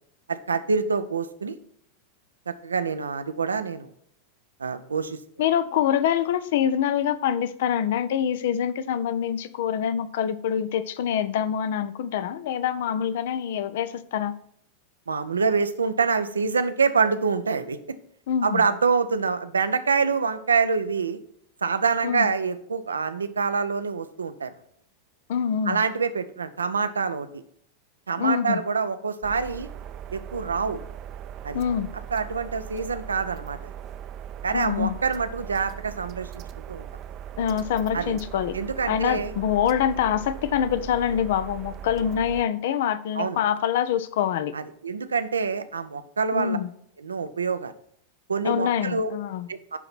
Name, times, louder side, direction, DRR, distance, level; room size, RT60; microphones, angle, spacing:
voice 1, 0.3-1.6 2.5-3.9 4.6-5.2 15.1-17.8 18.4-21.2 21.6-24.5 25.6-27.4 28.1-29.7 30.1-30.8 31.4-31.6 32.1-33.7 34.4-36.4 36.7-36.9 37.9-38.2 38.5-39.3 43.2-43.4 44.5-46.6 47.0-47.7 48.3-49.1 49.5-49.8, right 5 dB, 75° right, 11 dB, 0.7 m, -26 dB
voice 2, 5.4-14.3 18.3-18.6 22.0-22.3 25.3-25.8 28.2-28.6 31.5-31.9 34.5-35.0 37.4-38.6 38.9-44.5 46.3-46.7 48.4-49.5, left 9 dB, 55° left, 15 dB, 0.6 m, -25 dB
sound 1, 29.2-42.4, right 9 dB, 35° right, 0.6 m, -39 dB
10.5 x 3.9 x 5.9 m, 0.69 s
figure-of-eight pair, 90°, 0 cm